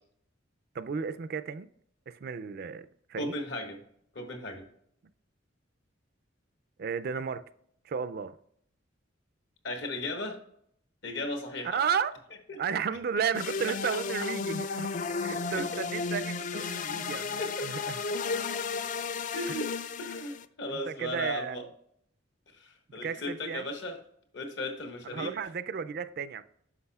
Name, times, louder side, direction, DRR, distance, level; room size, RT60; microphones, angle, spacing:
voice 1, 0.7-1.7 2.1-3.3 6.8-7.4 7.8-8.4 11.6-12.2 12.6-14.9 15.2-18.0 20.9-21.6 23.0-23.7 25.1-26.4, right 6 dB, 50° right, 0.4 m, -33 dB
voice 2, 3.2-3.8 4.1-4.7 9.6-10.4 11.0-11.8 12.5-12.6 15.3-15.6 17.4-17.5 19.3-19.7 20.0-21.7 22.5-24.0 24.3-25.3, left 1 dB, 65° left, 1.5 m, -36 dB
sound 1, 13.3-20.4, left 5 dB, 40° left, 0.3 m, -33 dB
9.6 x 6.2 x 2.3 m
head